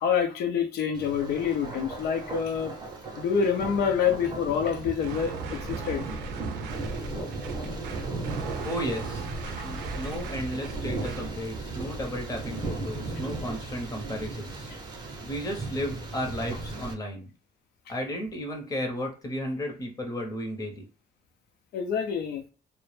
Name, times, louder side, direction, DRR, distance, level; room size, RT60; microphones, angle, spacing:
voice 1, 0.0-2.7 3.2-6.1 9.5-9.6 21.7-22.4, left 7 dB, 70° left, 0.5 m, -27 dB
Thunder, 0.9-16.9, right 3 dB, 25° right, 0.6 m, -36 dB
sound 1, 5.0-11.4, right 3 dB, 75° right, 0.5 m, -39 dB
voice 2, 8.6-9.3 9.6-14.7 15.2-17.3 17.9-20.8, equal, 20° left, 0.7 m, -34 dB
2.1 x 2.0 x 3.1 m
cardioid pair, 110°, 17 cm